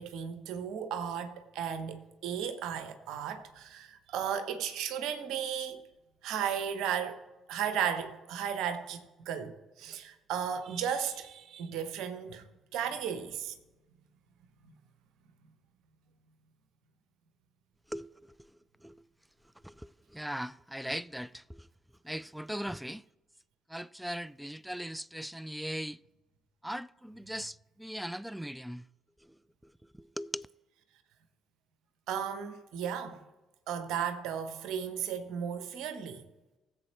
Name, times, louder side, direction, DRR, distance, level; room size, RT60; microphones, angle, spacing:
voice 1, 0.0-5.8 6.2-12.4 12.7-13.5 14.6-14.7 32.1-33.2 33.7-36.2, right 8 dB, 60° right, 1.1 m, -35 dB
voice 2, 20.1-21.6 22.0-23.0 23.7-26.0 26.6-28.8 30.0-30.5, equal, 5° right, 0.4 m, -39 dB
19.5 x 7.6 x 3.0 m
figure-of-eight pair, 45°, 0 cm